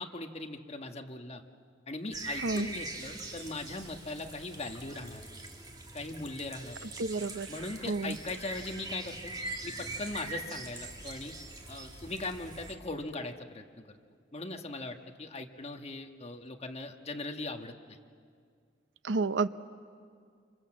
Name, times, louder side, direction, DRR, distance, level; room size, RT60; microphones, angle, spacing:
voice 1, 0.0-1.4 1.9-5.3 5.9-6.9 7.5-9.3 9.6-11.3 11.7-14.0 14.3-18.0, left 2 dB, 35° left, 4 dB, 1.4 m, -40 dB
sound 1, 2.1-12.7, right 2 dB, 25° right, 2.4 m, -42 dB
voice 2, 7.0-7.5 7.9-8.2 19.0-19.5, right 3 dB, 75° right, 14 dB, 0.7 m, -30 dB
28.0 x 26.5 x 7.6 m, 2.2 s
head